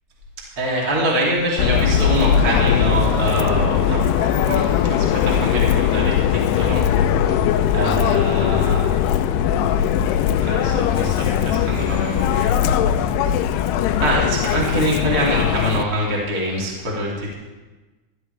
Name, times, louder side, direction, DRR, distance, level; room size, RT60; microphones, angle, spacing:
voice 1, 0.6-8.8 10.4-12.6 14.0-17.3, right 1 dB, 25° right, -4 dB, 2.3 m, -24 dB
Subway metro underground, 1.6-15.8, left 9 dB, 85° left, 2.3 m, -19 dB
18.5 x 12.5 x 3.3 m, 1.2 s
omnidirectional pair, 5.4 m